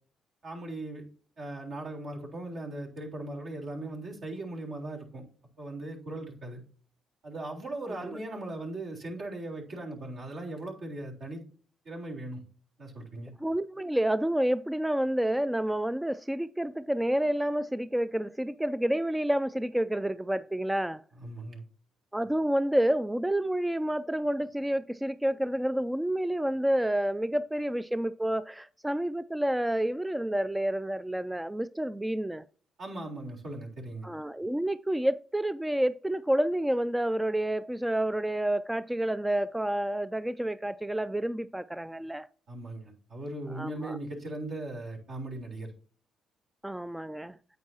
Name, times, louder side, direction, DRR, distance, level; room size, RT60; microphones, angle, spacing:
voice 1, 0.4-1.0 1.4-5.2 5.6-6.6 7.2-11.4 11.9-12.4 12.8-13.3 21.2-21.6 32.8-34.1 42.5-45.7, right 2 dB, 60° right, 3.8 m, -38 dB
voice 2, 13.4-21.0 22.1-32.4 34.0-42.3 43.5-44.0 46.6-47.4, right 1 dB, 5° right, 0.3 m, -29 dB
9.4 x 8.3 x 2.8 m
cardioid pair, 90°, 0 cm